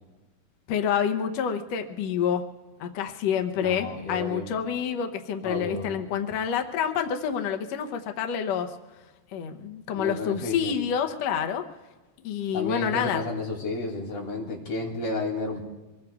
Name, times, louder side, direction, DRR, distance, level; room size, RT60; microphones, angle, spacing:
voice 1, 0.7-2.5 2.8-8.7 9.3-11.7 12.2-13.2, left 8 dB, 90° left, 5 dB, 1.4 m, -28 dB
voice 2, 3.6-4.5 5.4-6.0 9.9-10.7 12.5-15.6, left 2 dB, 45° left, -1 dB, 3.4 m, -32 dB
24.5 x 21.5 x 2.4 m, 1.1 s
omnidirectional pair, 4.1 m